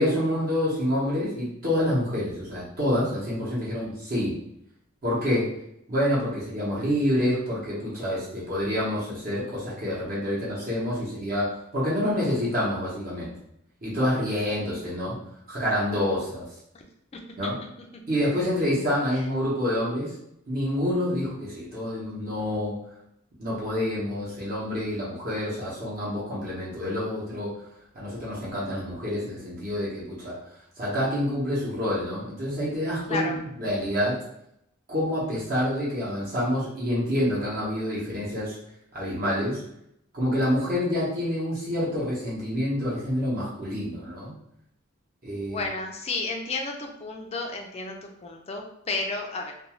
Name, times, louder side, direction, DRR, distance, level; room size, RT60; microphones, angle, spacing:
voice 1, 0.0-4.4 5.0-5.6 5.9-13.3 13.8-15.1 15.5-16.4 17.4-17.6 18.1-20.1 20.5-22.8 23.4-27.5 27.9-30.4 30.8-33.3 33.6-34.2 34.9-38.5 38.9-39.6 40.1-44.3 45.2-45.7, left 1 dB, 45° right, -8 dB, 0.9 m, -27 dB
voice 2, 45.5-49.5, left 3 dB, 30° left, 2 dB, 0.4 m, -32 dB
2.5 x 2.3 x 3.0 m, 0.77 s
head